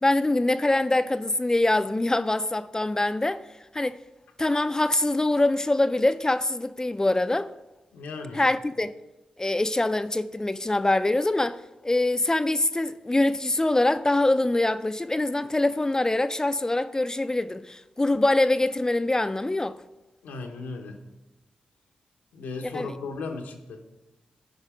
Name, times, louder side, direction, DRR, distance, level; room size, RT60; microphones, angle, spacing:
voice 1, 0.0-3.4 3.7-4.0 4.4-7.5 8.3-8.9 9.4-19.8 22.7-22.9, left 2 dB, 20° left, 0.4 m, -24 dB
voice 2, 7.9-8.4 20.2-21.0 22.3-23.8, left 3 dB, 90° left, 1.0 m, -36 dB
10.5 x 4.9 x 4.9 m
supercardioid pair, 45°, 3 cm